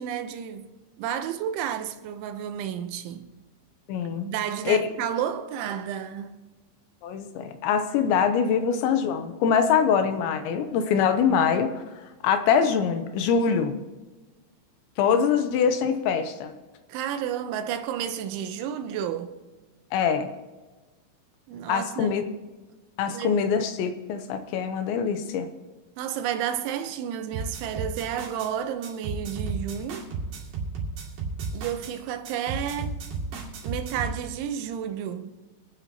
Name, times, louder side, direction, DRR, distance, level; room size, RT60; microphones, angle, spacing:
voice 1, 0.0-3.3 4.2-6.4 16.9-19.3 21.5-22.1 23.1-23.4 26.0-30.1 31.5-32.9 33.6-35.4, right 9 dB, 85° right, 3.2 m, -31 dB
voice 2, 3.9-4.3 4.7-4.8 7.0-11.8 12.2-13.8 15.0-16.5 19.9-20.3 21.7-22.2 23.0-25.5, left 7 dB, 80° left, 3.0 m, -24 dB
sound 1, 27.3-28.5 28.8-31.9 32.2-34.2, right 4 dB, 65° right, 4.4 m, -33 dB
25.5 x 9.4 x 3.0 m
omnidirectional pair, 5.4 m